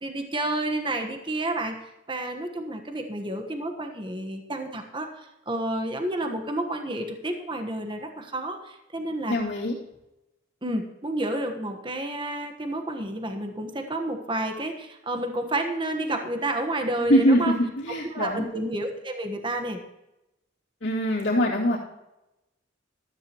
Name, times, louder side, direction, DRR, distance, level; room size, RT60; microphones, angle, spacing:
voice 1, 0.0-1.8 2.1-9.4 10.6-17.5 18.1-19.8, right 1 dB, 25° right, 5 dB, 1.2 m, -30 dB
voice 2, 9.3-9.7 17.1-18.5 20.8-21.8, equal, 65° left, -9 dB, 2.8 m, -23 dB
14.5 x 13.5 x 3.0 m, 0.93 s
head